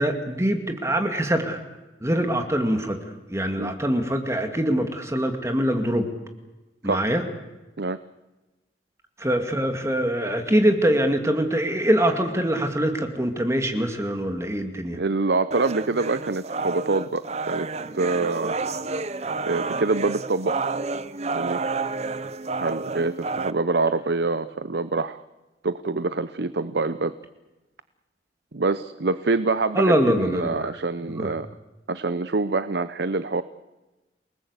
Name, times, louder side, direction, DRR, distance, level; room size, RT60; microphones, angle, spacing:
voice 1, 0.0-1.6 2.0-3.0 3.3-6.1 6.8-7.2 9.2-15.0 29.7-30.7 31.2-31.3, right 1 dB, 15° right, 6 dB, 2.3 m, -23 dB
voice 2, 14.9-17.7 17.9-18.5 19.5-20.6 21.3-21.6 22.6-25.2 25.6-27.1 28.5-31.5 31.9-33.4, right 3 dB, 70° right, 13 dB, 0.8 m, -25 dB
sound 1, 15.5-23.5, right 3 dB, 40° right, 0.8 m, -30 dB
29.0 x 19.0 x 8.2 m, 1.1 s
head